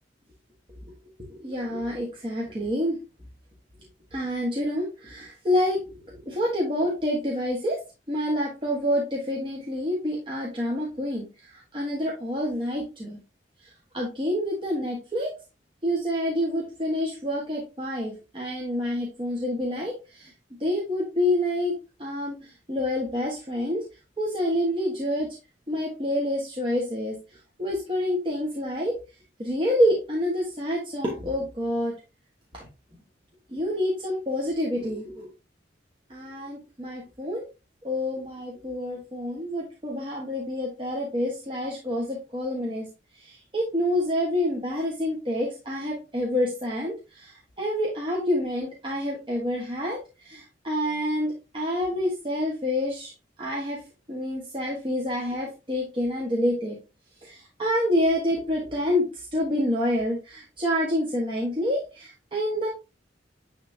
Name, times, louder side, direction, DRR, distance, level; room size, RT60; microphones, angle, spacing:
voice 1, 1.3-3.0 4.1-7.8 8.1-11.3 11.5-13.2 13.9-15.3 15.8-20.3 20.6-21.7 22.0-22.3 22.7-23.8 24.2-25.3 25.7-27.1 27.6-28.9 29.4-31.9 32.5-32.7 33.5-35.3 36.1-37.4 37.8-42.9 43.2-53.1 53.4-53.8 54.1-56.8 57.2-59.0 59.3-62.7, left 1 dB, 30° right, -3 dB, 1.5 m, -27 dB
10.0 x 3.5 x 2.8 m, 0.29 s
head